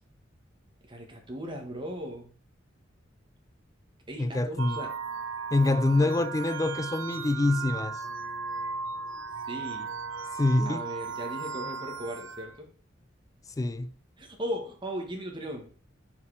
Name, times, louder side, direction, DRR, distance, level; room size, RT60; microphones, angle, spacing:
voice 1, 0.9-2.3 4.1-4.9 5.6-6.2 9.5-9.9 10.6-12.7 14.2-15.7, equal, 25° right, 1.5 m, -37 dB
voice 2, 4.2-4.8 5.5-8.0 10.4-10.8 13.6-13.9, left 2 dB, 20° left, 0.3 m, -25 dB
sound 1, 4.6-12.5, right 5 dB, 90° right, 0.9 m, -36 dB
5.5 x 4.8 x 4.8 m
head